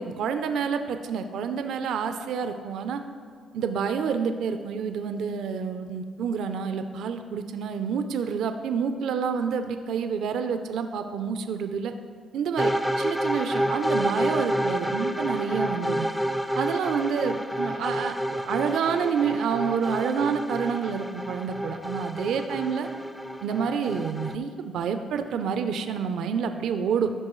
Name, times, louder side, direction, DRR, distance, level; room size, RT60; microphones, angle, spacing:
voice 1, 0.0-3.0 3.5-11.9 12.3-16.1 16.6-22.9 23.4-27.1, right 6 dB, 75° right, 8 dB, 0.4 m, -28 dB
sound 1, 12.6-24.3, equal, 5° left, 0.4 m, -29 dB
13.5 x 5.9 x 3.1 m, 2.1 s
cardioid pair, 90°, 0 cm